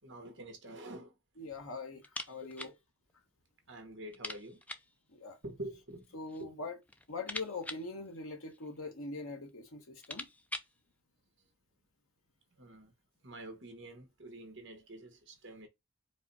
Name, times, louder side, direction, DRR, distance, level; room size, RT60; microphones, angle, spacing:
voice 1, 0.0-1.1 2.4-2.7 3.7-4.6 5.4-6.5 12.6-12.9 13.2-15.7, right 1 dB, 60° right, 1.3 m, -47 dB
voice 2, 1.4-2.7 5.1-5.4 6.1-6.8 7.1-10.3, left 3 dB, 80° left, 1.1 m, -42 dB
sound 1, 2.0-2.8 3.1-3.2 3.5-3.6 4.1-5.0 5.9-6.5 6.8-8.8 9.5-9.6 9.8-10.8, left 2 dB, 5° left, 0.3 m, -44 dB
4.7 x 2.2 x 4.1 m
head